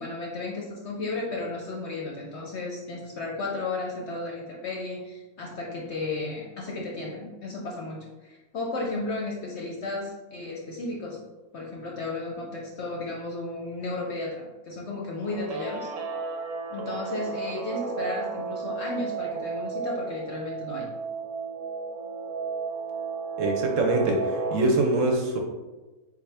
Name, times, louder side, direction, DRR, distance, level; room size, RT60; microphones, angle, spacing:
voice 1, 0.0-11.2 11.5-15.9 16.7-20.9, left 2 dB, 60° left, -2 dB, 0.7 m, -34 dB
Guitar, 15.2-24.7, right 4 dB, 85° right, 1.2 m, -33 dB
voice 2, 23.4-25.4, right 2 dB, 65° right, 1 dB, 0.9 m, -24 dB
3.9 x 3.7 x 3.3 m, 1.2 s
omnidirectional pair, 1.6 m